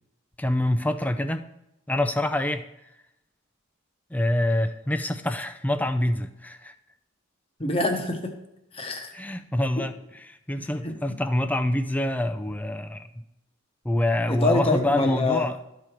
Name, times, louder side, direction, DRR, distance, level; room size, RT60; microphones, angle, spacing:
voice 1, 0.4-1.5 1.9-2.7 4.1-6.7 9.1-9.9 10.3-13.2 13.8-15.6, left 1 dB, 5° left, 8 dB, 0.4 m, -26 dB
voice 2, 7.6-8.3 8.7-9.1 9.8-9.9 10.6-11.2 14.3-15.5, left 2 dB, 25° left, 4 dB, 1.0 m, -26 dB
12.5 x 4.9 x 4.5 m, 0.87 s
head